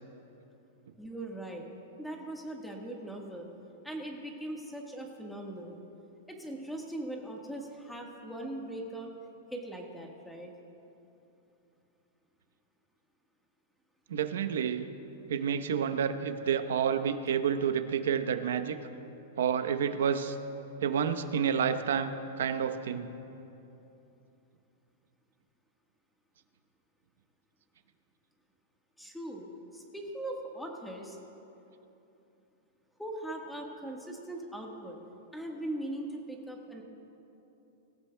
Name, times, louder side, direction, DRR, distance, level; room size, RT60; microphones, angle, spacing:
voice 1, 1.0-1.6 2.0-3.5 3.8-5.8 6.3-9.1 9.5-10.5 29.0-29.5 29.7-31.2 33.0-35.0 35.3-36.8, right 1 dB, ahead, 0 dB, 1.5 m, -40 dB
voice 2, 14.1-14.9 15.3-18.8 19.4-20.4 20.8-23.1, right 7 dB, 85° right, 9 dB, 0.9 m, -29 dB
25.0 x 14.5 x 2.3 m, 2.9 s
supercardioid pair, 160°, 0 cm